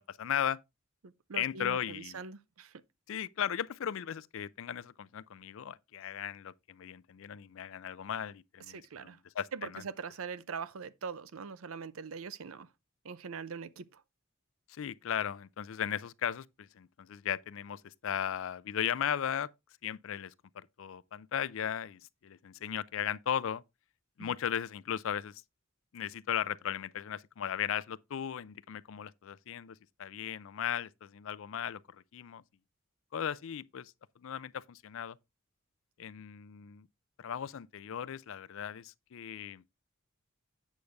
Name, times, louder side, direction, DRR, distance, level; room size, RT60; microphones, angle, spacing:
voice 1, 0.1-0.6 1.3-2.2 3.1-9.8 14.7-19.5 19.8-23.6 24.2-25.3 25.9-31.8 32.1-32.4 33.1-35.2 36.0-36.9 37.2-39.6, left 9 dB, 65° left, 0.4 m, -37 dB
voice 2, 1.0-2.7 8.7-9.2 9.5-12.7 13.0-14.0 24.2-24.3, right 5 dB, 75° right, 0.6 m, -42 dB
8.3 x 6.5 x 3.4 m
head